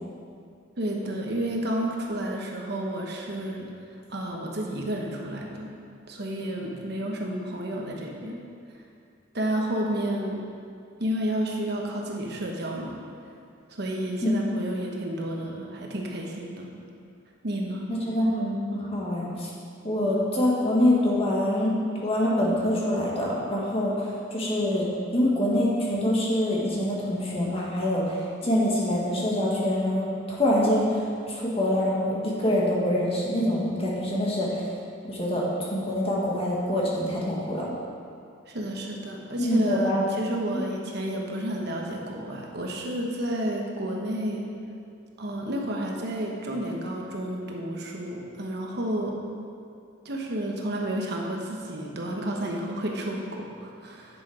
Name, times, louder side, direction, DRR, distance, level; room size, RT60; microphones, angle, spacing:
voice 1, 0.8-3.7 4.1-5.7 6.1-8.4 9.3-10.4 11.0-13.0 13.7-16.7 17.4-17.9 38.5-44.5 45.2-49.1 50.0-54.2, right 1 dB, 55° right, 0 dB, 1.1 m, -31 dB
voice 2, 14.2-14.6 17.9-19.5 19.8-21.8 22.0-24.8 25.1-28.2 28.4-34.7 35.1-37.7 39.4-40.0 40.5-40.6, left 1 dB, 30° left, -4 dB, 1.7 m, -25 dB
10.5 x 6.1 x 4.9 m, 2.4 s
head